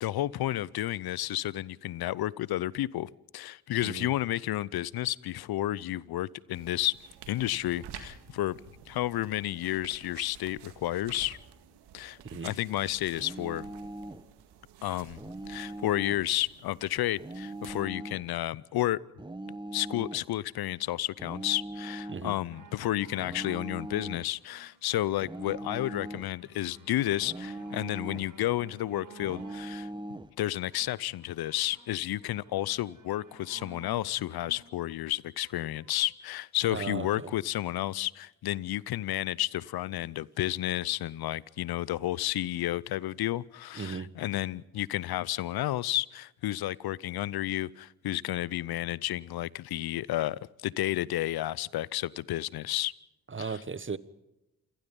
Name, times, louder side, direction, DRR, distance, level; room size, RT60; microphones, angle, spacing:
voice 1, 0.0-7.0 7.3-8.6 8.9-11.4 11.9-12.2 12.4-13.6 14.8-15.2 15.5-19.0 19.7-29.9 30.4-52.9 53.4-53.6, left 14 dB, 70° left, 0.7 m, -31 dB
sound 1, 6.5-17.8, right 9 dB, 80° right, 2.0 m, -51 dB
sound 2, 13.2-14.3 15.2-16.3 17.2-18.3 19.2-20.3 21.2-22.3 23.2-24.3 25.2-26.3 27.2-28.3 29.2-30.3, right 1 dB, 10° right, 1.1 m, -40 dB
sound 3, 22.5-36.1 36.8-36.9, right 4 dB, 55° right, 4.1 m, -55 dB
voice 2, 36.7-37.3 43.8-44.1 53.3-54.0, right 5 dB, 30° right, 1.2 m, -36 dB
28.0 x 18.0 x 5.4 m
hypercardioid pair, 45°, 39 cm